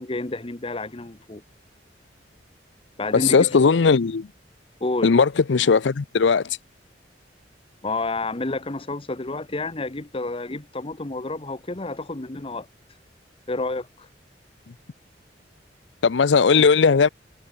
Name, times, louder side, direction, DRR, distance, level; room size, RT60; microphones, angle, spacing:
voice 1, 0.0-1.4 3.0-3.5 4.8-5.1 7.8-12.7 13.5-14.1, left 2 dB, 30° left, 1.1 m, -30 dB
voice 2, 3.1-4.3 5.0-6.6 16.0-17.1, left 5 dB, 85° left, 0.6 m, -18 dB
head